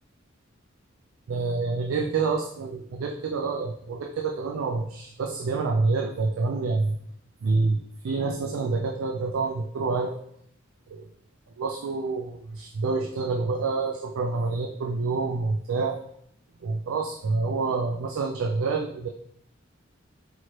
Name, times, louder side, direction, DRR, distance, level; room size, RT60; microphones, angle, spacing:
voice 1, 1.3-7.0 7.4-7.8 8.0-10.2 10.9-11.1 11.6-16.0 16.6-19.1, right 3 dB, 75° right, 2 dB, 0.4 m, -27 dB
4.5 x 2.9 x 3.0 m, 0.68 s
head